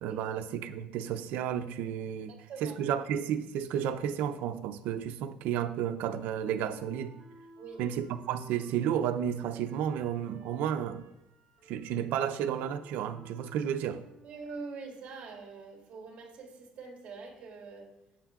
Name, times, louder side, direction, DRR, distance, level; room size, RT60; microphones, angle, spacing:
voice 1, 0.0-2.3 2.6-7.1 7.8-11.1 11.7-14.0, right 9 dB, 75° right, 8 dB, 0.6 m, -32 dB
voice 2, 2.3-2.8 7.6-7.8 14.2-17.9, right 4 dB, 45° right, -2 dB, 2.9 m, -44 dB
Wind instrument woodwind instrument, 6.7-14.9, right 2 dB, 20° right, 2.8 m, -56 dB
11.5 x 8.1 x 2.5 m, 0.89 s
cardioid pair, 135°, 3 cm